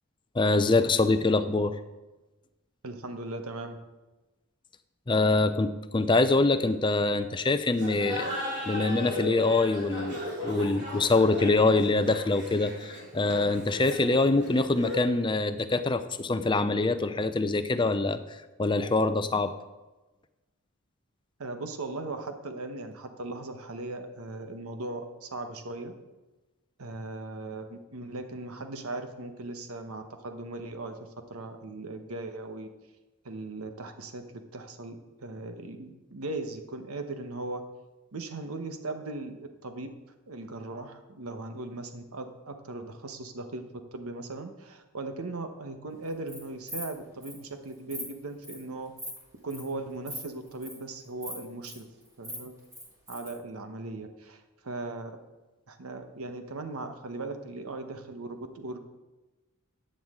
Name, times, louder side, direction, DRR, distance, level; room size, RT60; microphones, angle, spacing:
voice 1, 0.3-1.8 5.1-8.3 8.7-19.5, left 3 dB, 20° left, 10 dB, 0.5 m, -25 dB
voice 2, 2.8-3.8 21.4-25.9 26.8-32.7 33.2-37.6 38.1-39.9 40.3-43.6 43.9-48.9 49.4-51.9 52.2-52.5 53.1-55.2 55.7-58.8, right 2 dB, 80° right, 7 dB, 1.0 m, -38 dB
Laughter, 7.7-15.2, left 1 dB, 35° right, 3.7 m, -36 dB
Insect, 46.1-46.4 46.7-46.9 47.2-47.3 47.7-48.0 48.4-48.6 49.0-49.2 49.5-49.7 50.0-50.2 50.5-50.7 51.2-51.7 52.1-53.3, equal, 15° right, 2.7 m, -39 dB
14.0 x 8.8 x 3.7 m, 1.1 s
head